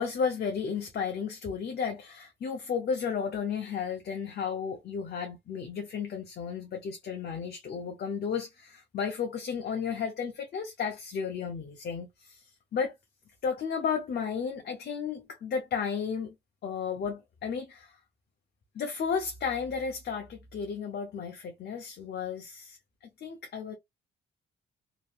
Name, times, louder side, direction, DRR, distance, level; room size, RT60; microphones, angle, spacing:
voice 1, 0.0-12.9 13.4-16.3 16.6-17.9 18.7-22.8 23.2-23.8, left 6 dB, 55° left, 0.8 m, -33 dB
3.0 x 2.6 x 2.5 m
cardioid pair, 90°, 20 cm